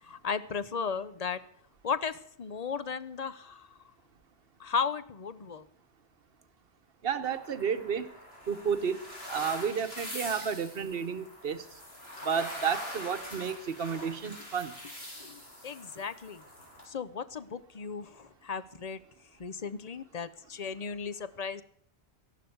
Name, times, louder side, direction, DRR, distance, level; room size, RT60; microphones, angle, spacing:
voice 1, 0.0-1.4 1.8-3.7 4.6-5.6 15.2-16.4 16.9-19.0 19.4-21.6, left 6 dB, 40° left, 14 dB, 0.8 m, -35 dB
voice 2, 7.0-8.1 8.5-11.6 12.2-14.8, right 7 dB, 60° right, 10 dB, 1.2 m, -32 dB
sound 1, 7.2-16.8, left 1 dB, 65° left, 4.8 m, -43 dB
14.0 x 11.5 x 7.9 m, 0.65 s
omnidirectional pair, 1.1 m